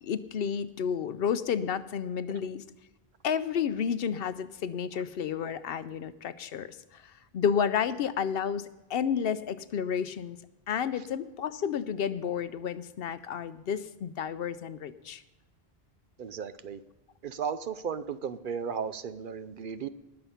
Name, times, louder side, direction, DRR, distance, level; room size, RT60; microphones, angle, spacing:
voice 1, 0.0-2.6 3.2-10.4 10.7-15.2, left 7 dB, 70° left, 14 dB, 0.8 m, -31 dB
voice 2, 16.2-16.8 17.2-19.9, right 6 dB, 60° right, 13 dB, 0.7 m, -35 dB
19.5 x 6.9 x 5.7 m, 1.0 s
omnidirectional pair, 1.1 m